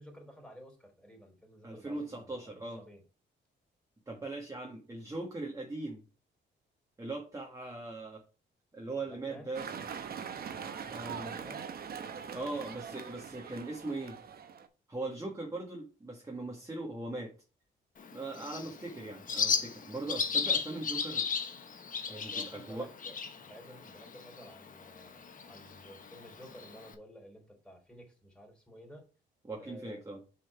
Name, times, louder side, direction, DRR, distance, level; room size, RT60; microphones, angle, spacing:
voice 1, 0.0-3.0 9.1-9.5 10.9-11.7 22.1-29.1 29.6-30.0, equal, 5° left, 1 dB, 3.4 m, -53 dB
voice 2, 1.6-2.8 4.1-6.0 7.0-8.2 8.7-9.7 10.9-11.3 12.3-14.2 14.9-17.3 18.1-21.3 22.1-22.9 29.5-30.2, right 2 dB, 15° right, -1 dB, 1.5 m, -40 dB
sound 1, 9.5-14.7, right 7 dB, 50° right, 0.9 m, -42 dB
Bird, 18.0-26.9, left 6 dB, 45° left, 1.1 m, -36 dB
6.3 x 4.3 x 4.8 m, 0.34 s
cardioid pair, 90°, 20 cm